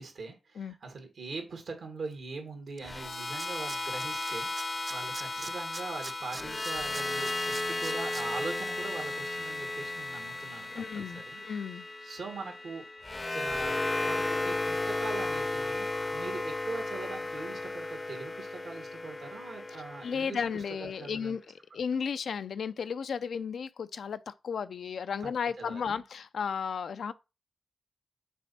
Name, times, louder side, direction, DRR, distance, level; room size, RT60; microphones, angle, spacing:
voice 1, 0.0-4.5 4.9-11.4 12.0-12.8 13.3-21.4 25.2-25.3 25.6-26.0, right 4 dB, 85° right, 2.2 m, -42 dB
sound 1, 2.8-21.0, left 2 dB, 35° left, 0.6 m, -34 dB
Tools, 2.8-2.9 3.1-4.3 4.6-8.2 8.6-8.7, right 3 dB, 45° right, 0.5 m, -42 dB
voice 2, 10.7-11.9 20.0-21.4 21.7-27.1, left 6 dB, 90° left, 0.4 m, -34 dB
6.8 x 4.2 x 4.2 m
cardioid pair, 50°, 0 cm